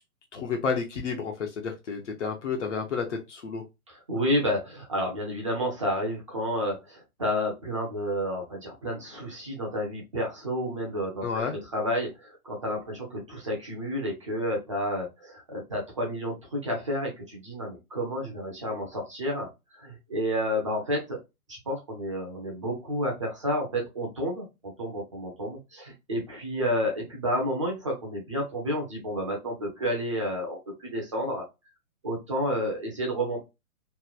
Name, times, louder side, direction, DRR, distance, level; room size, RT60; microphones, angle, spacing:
voice 1, 0.3-3.6 11.2-11.6, left 5 dB, 50° left, 2 dB, 0.7 m, -31 dB
voice 2, 3.9-11.2 11.7-19.5 19.7-21.2 21.5-24.5 24.8-31.4 32.0-33.4, equal, 20° right, -1 dB, 0.5 m, -30 dB
3.0 x 2.1 x 2.3 m, 0.24 s
hypercardioid pair, 155°, 45 cm